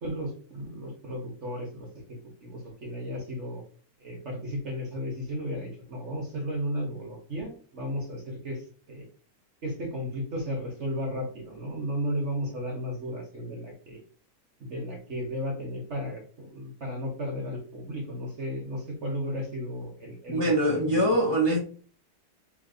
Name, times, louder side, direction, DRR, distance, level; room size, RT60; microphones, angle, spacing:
voice 1, 0.0-1.9 2.4-3.6 4.0-9.0 9.6-14.0 14.6-21.0, equal, 45° right, 0 dB, 1.1 m, -34 dB
voice 2, 20.3-21.6, right 1 dB, 20° left, -5 dB, 0.7 m, -23 dB
3.3 x 3.1 x 3.8 m, 0.44 s
omnidirectional pair, 1.9 m